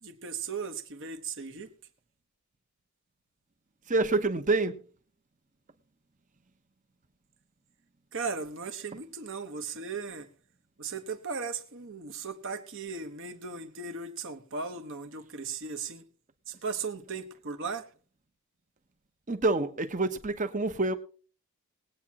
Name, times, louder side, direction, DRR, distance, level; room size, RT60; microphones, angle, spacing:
voice 1, 0.0-1.7 8.1-10.3 10.8-16.0 16.5-17.8, right 5 dB, 55° right, 1.3 m, -37 dB
voice 2, 3.9-4.8 19.3-20.9, right 2 dB, 35° right, 0.9 m, -27 dB
21.0 x 8.6 x 3.0 m
head